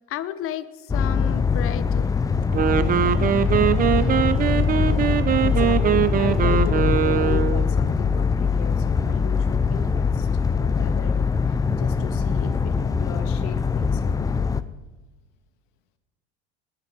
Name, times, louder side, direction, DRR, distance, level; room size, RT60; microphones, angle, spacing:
voice 1, 0.1-2.1, left 11 dB, 40° left, 13 dB, 1.0 m, -32 dB
sound 1, 0.9-14.6, left 5 dB, 10° left, 0.4 m, -22 dB
Wind instrument woodwind instrument, 2.4-7.7, right 9 dB, 25° right, 0.7 m, -22 dB
voice 2, 5.4-14.2, left 9 dB, 65° left, 7 dB, 1.8 m, -37 dB
20.0 x 9.8 x 4.6 m, 1.2 s
supercardioid pair, 110°, 33 cm